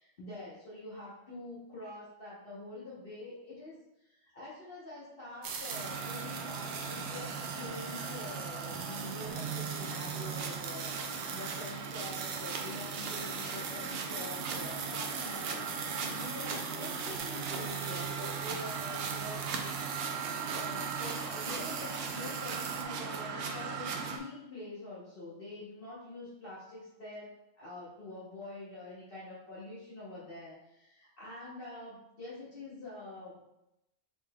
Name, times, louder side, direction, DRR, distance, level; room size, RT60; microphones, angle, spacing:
voice 1, 0.0-19.5 20.5-33.6, left 2 dB, 45° left, -9 dB, 1.1 m, -46 dB
sound 1, 5.4-22.8, right 6 dB, 85° right, 1.0 m, -42 dB
sound 2, 5.7-24.2, right 5 dB, 60° right, 0.7 m, -38 dB
5.5 x 3.8 x 2.2 m, 0.90 s
omnidirectional pair, 1.4 m